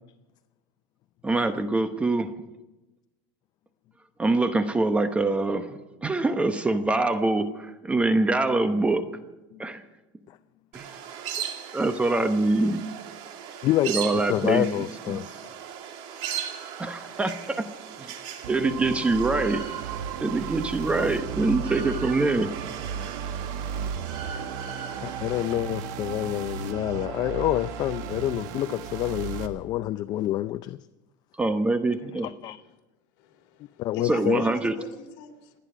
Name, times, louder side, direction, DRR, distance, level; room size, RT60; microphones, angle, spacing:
voice 1, 1.2-2.3 4.2-9.1 9.6-9.8 10.7-10.9 11.7-12.8 13.9-14.7 15.1-15.2 16.8-17.7 18.0-18.1 18.5-19.7 20.2-22.5 31.4-32.3 34.0-34.8, right 2 dB, 10° right, 0.9 m, -24 dB
sound 1, 10.7-25.5, right 8 dB, 55° right, 2.2 m, -38 dB
voice 2, 13.6-15.4 25.0-30.8 32.2-32.6 33.8-34.5, left 14 dB, 40° left, 0.4 m, -27 dB
sound 2, 18.4-29.5, right 8 dB, 75° right, 1.6 m, -35 dB
voice 3, 33.2-35.5, left 6 dB, 60° left, 3.1 m, -41 dB
29.0 x 10.0 x 5.0 m
supercardioid pair, 135°, 10 cm